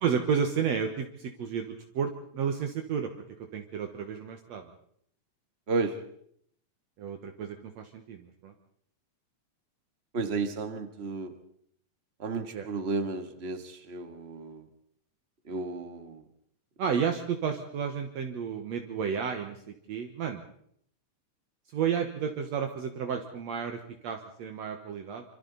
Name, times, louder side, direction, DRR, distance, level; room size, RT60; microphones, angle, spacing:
voice 1, 0.0-3.1 3.5-4.6 7.0-8.5 12.5-12.6 16.8-20.4 21.7-25.2, right 7 dB, 65° right, 4 dB, 2.4 m, -32 dB
voice 2, 5.7-6.0 10.1-11.3 12.2-14.7 15.4-16.2, right 3 dB, 30° right, 8 dB, 1.4 m, -33 dB
26.0 x 26.0 x 4.1 m, 0.66 s
omnidirectional pair, 3.4 m